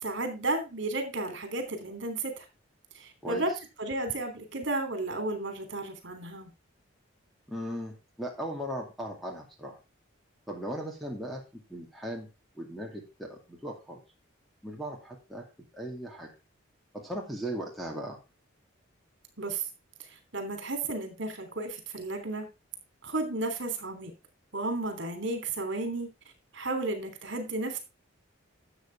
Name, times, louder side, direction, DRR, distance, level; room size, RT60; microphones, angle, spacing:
voice 1, 0.0-2.4 2.9-3.5 3.8-6.5 19.4-19.7 20.0-22.5 23.0-24.1 24.5-26.1 26.5-27.8, right 2 dB, 60° right, 7 dB, 3.1 m, -33 dB
voice 2, 7.5-9.8 10.5-12.3 12.5-14.0 14.6-15.5 15.7-16.3 16.9-18.2, equal, ahead, -2 dB, 2.4 m, -38 dB
12.5 x 8.0 x 3.5 m, 0.27 s
head